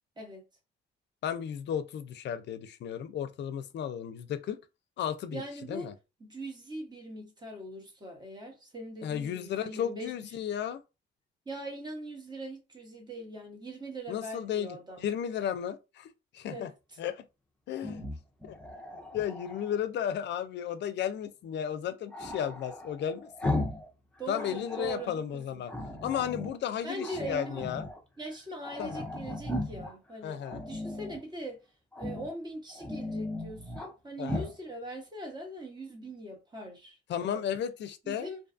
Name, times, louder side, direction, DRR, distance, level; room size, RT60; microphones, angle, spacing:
voice 1, 1.2-4.6 5.0-5.4 5.7-5.9 9.0-10.8 14.1-16.1 16.3-16.7 17.0-17.2 17.7-18.1 18.4-18.6 19.1-23.5 24.3-25.7 26.0-27.9 28.8-29.1 30.2-30.6 34.2-34.5 37.1-38.3, left 9 dB, 60° left, 0.4 m, -34 dB
voice 2, 5.3-5.9 6.2-10.1 11.5-15.1 16.5-16.7 24.2-25.6 26.8-27.6 28.2-31.6 32.0-37.4 38.0-38.4, right 1 dB, 20° right, 1.0 m, -41 dB
Growling, 17.7-19.8 22.1-23.9 24.2-25.1 25.7-26.6 27.0-28.0 28.3-28.4 28.6-29.9 30.4-31.2 31.9-32.4 32.7-33.9 34.2-34.6, left 1 dB, 5° left, 0.6 m, -37 dB
2.6 x 2.2 x 2.5 m
cardioid pair, 90°, 20 cm